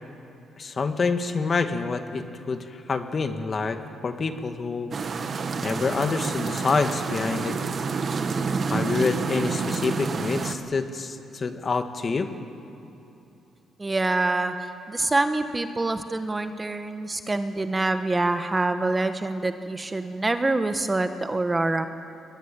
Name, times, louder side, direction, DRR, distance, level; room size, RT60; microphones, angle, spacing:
voice 1, 0.6-4.9 5.6-7.6 8.7-12.3, left 4 dB, 40° left, 7 dB, 1.8 m, -27 dB
sound 1, 4.9-10.5, right 4 dB, 45° right, 1.6 m, -28 dB
voice 2, 13.8-21.9, right 2 dB, 20° right, 8 dB, 1.3 m, -26 dB
22.5 x 20.5 x 9.1 m, 3.0 s
cardioid pair, 90°, 0 cm